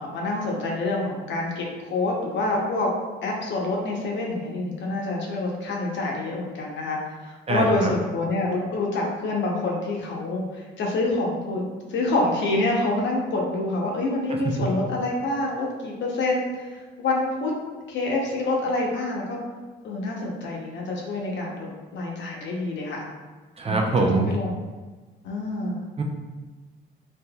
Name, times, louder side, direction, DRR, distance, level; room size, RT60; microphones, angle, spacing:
voice 1, 0.0-2.9 3.2-11.6 11.9-17.5 17.9-19.4 19.8-23.1 23.7-24.6 25.2-25.8, left 2 dB, 70° left, -1 dB, 0.7 m, -27 dB
voice 2, 7.5-7.9 23.6-24.3 26.0-26.1, right 3 dB, 30° right, 1 dB, 0.4 m, -23 dB
3.4 x 2.8 x 2.2 m, 1.3 s
cardioid pair, 90°, 20 cm